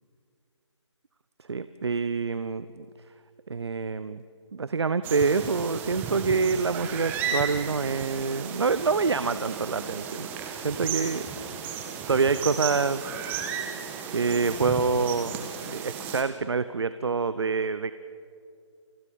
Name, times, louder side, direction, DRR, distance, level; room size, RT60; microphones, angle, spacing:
voice 1, 1.5-2.9 3.5-4.2 4.5-10.3 10.6-11.3 12.1-13.0 14.1-17.9, right 4 dB, 60° right, 14 dB, 0.8 m, -26 dB
sound 1, 5.0-16.2, right 6 dB, 10° right, 1.5 m, -34 dB
29.5 x 25.0 x 5.4 m, 2.4 s
figure-of-eight pair, 150°, 16 cm